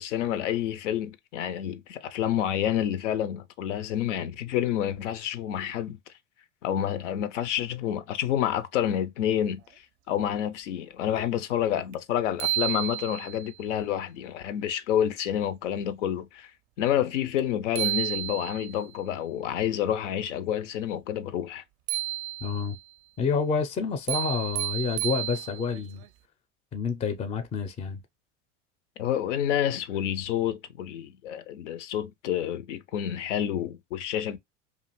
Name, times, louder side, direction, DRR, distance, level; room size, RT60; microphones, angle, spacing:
voice 1, 0.0-6.0 6.6-9.6 10.1-16.5 16.8-21.6 29.0-34.4, left 10 dB, 75° left, 0.5 m, -29 dB
sound 1, 11.9-12.0 12.4-13.5 17.4-17.5 17.8-18.8 21.9-22.8 24.1-25.8, right 16 dB, 50° right, 0.4 m, -31 dB
voice 2, 22.4-22.8 23.2-26.0 26.7-28.0, left 5 dB, 20° left, 0.4 m, -28 dB
2.5 x 2.4 x 2.9 m
hypercardioid pair, 75°, 37 cm